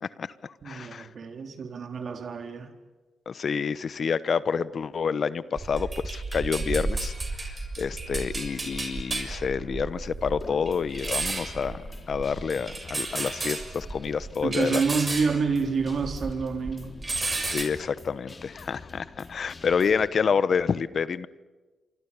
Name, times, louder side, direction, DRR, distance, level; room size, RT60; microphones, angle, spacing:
voice 1, 0.0-1.1 3.3-11.8 12.1-14.8 17.4-21.3, left 6 dB, 60° left, 16 dB, 1.0 m, -28 dB
voice 2, 0.6-2.7 14.4-16.9, right 5 dB, 60° right, 5 dB, 3.8 m, -28 dB
sound 1, 5.6-16.4 16.7-17.6, right 3 dB, 35° right, 6.4 m, -33 dB
Guitar, 10.4-20.1, left 3 dB, 40° left, 4.0 m, -46 dB
28.5 x 25.0 x 7.1 m, 1.2 s
supercardioid pair, 55°, 0 cm